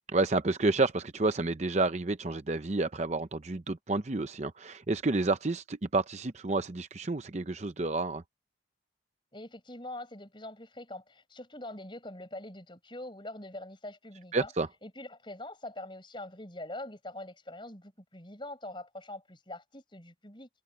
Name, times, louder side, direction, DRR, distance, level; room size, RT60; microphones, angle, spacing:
voice 1, 0.1-8.2 14.3-14.7, right 3 dB, 35° right, 0.7 m, -30 dB
voice 2, 9.3-14.5 14.8-20.5, left 1 dB, 25° left, 5.7 m, -43 dB
head